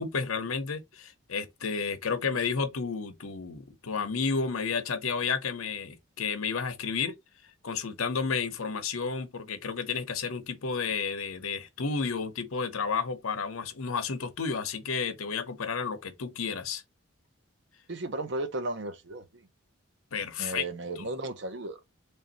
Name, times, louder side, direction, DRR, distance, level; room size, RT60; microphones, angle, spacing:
voice 1, 0.0-7.1 7.6-16.8 20.1-20.6 21.0-21.1, left 5 dB, 85° left, 0.8 m, -31 dB
voice 2, 17.9-19.4 20.4-21.8, right 2 dB, 55° right, 0.6 m, -35 dB
3.5 x 2.6 x 4.0 m
head